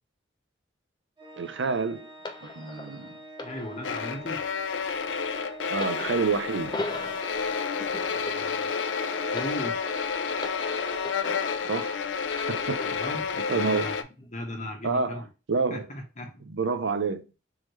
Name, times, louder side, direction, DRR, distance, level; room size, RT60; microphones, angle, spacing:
Organ, 1.2-11.9, right 2 dB, 25° right, 1.4 m, -46 dB
voice 1, 1.4-2.1 2.4-3.1 5.7-6.8 11.7-12.0 12.5-12.8 13.5-13.9 14.8-15.2 15.5-15.9 16.5-17.3, right 4 dB, 85° right, 0.6 m, -28 dB
sound 1, 2.2-11.9 12.3-13.3 14.1-14.3, left 2 dB, 25° left, 0.6 m, -40 dB
voice 2, 3.4-4.4 8.1-8.8 9.2-9.8 12.8-15.3 15.7-16.4, left 1 dB, 40° left, 1.2 m, -37 dB
sound 2, 3.8-14.0, left 5 dB, 85° left, 0.5 m, -30 dB
3.7 x 3.2 x 2.9 m
head